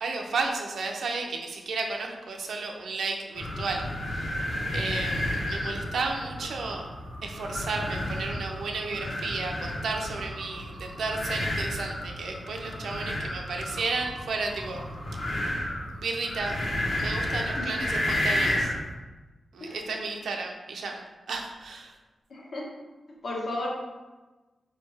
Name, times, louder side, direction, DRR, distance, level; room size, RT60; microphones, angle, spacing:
voice 1, 0.0-4.5 4.7-6.9 7.2-14.9 15.3-15.6 15.9-16.6 17.0-18.7 19.5-21.0 21.3-21.9, right 3 dB, 90° right, 2 dB, 0.6 m, -33 dB
sound 1, 3.3-18.8, left 1 dB, 50° left, 0.9 m, -32 dB
voice 2, 22.3-22.7 23.2-23.7, left 1 dB, 65° left, -4 dB, 1.2 m, -34 dB
4.6 x 3.3 x 3.4 m, 1.2 s
wide cardioid pair, 140°, 0 cm